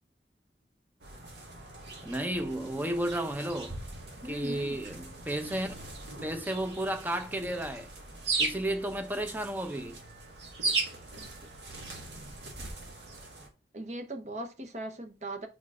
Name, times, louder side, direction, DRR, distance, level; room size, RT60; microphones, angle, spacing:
sound 1, 1.0-13.5, right 3 dB, 85° right, 1.6 m, -38 dB
voice 1, 2.0-3.8 4.3-5.8 6.2-7.9 8.4-10.0, right 1 dB, 10° right, 0.6 m, -33 dB
voice 2, 4.2-4.8 11.2-11.3 13.7-15.5, right 1 dB, 40° right, 0.9 m, -39 dB
4.7 x 4.4 x 4.8 m
head